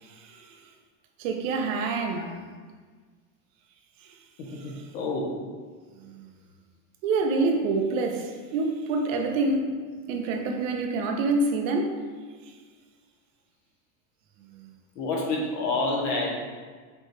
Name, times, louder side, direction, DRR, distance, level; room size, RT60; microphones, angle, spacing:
voice 1, 0.0-0.5 1.2-2.3 6.0-6.3 7.0-9.7 10.1-12.0, right 3 dB, 85° right, 0.8 m, -27 dB
voice 2, 4.4-5.4 14.9-16.3, left 2 dB, 70° left, 1.2 m, -29 dB
5.2 x 3.1 x 3.2 m
supercardioid pair, 155°, 39 cm